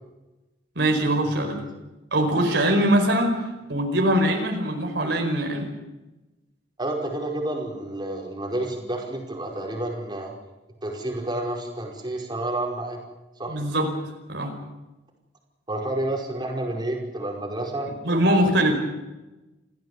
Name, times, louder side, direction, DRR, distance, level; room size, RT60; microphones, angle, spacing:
voice 1, 0.7-1.6 2.1-5.7 13.5-13.9 14.3-14.5 18.0-18.7, right 1 dB, 65° right, 3 dB, 5.0 m, -22 dB
voice 2, 6.8-10.3 10.8-13.0 13.4-13.6 15.7-17.9 18.4-18.5, right 1 dB, 25° right, -1 dB, 5.2 m, -30 dB
28.5 x 15.5 x 8.2 m, 1.1 s
head